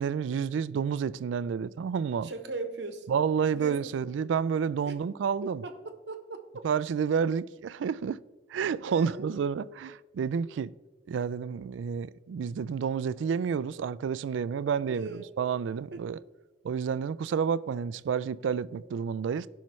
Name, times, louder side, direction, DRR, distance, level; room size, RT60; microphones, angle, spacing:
voice 1, 0.0-2.3 3.1-5.6 6.6-8.2 8.5-10.7 11.1-16.2 16.6-19.5, right 6 dB, 85° right, 0.3 m, -30 dB
voice 2, 2.2-3.2 3.5-4.0 4.9-5.0 5.4-6.6 8.9-9.3 14.9-15.3 15.9-16.0, right 3 dB, 70° right, 1.0 m, -39 dB
16.0 x 5.7 x 3.1 m
head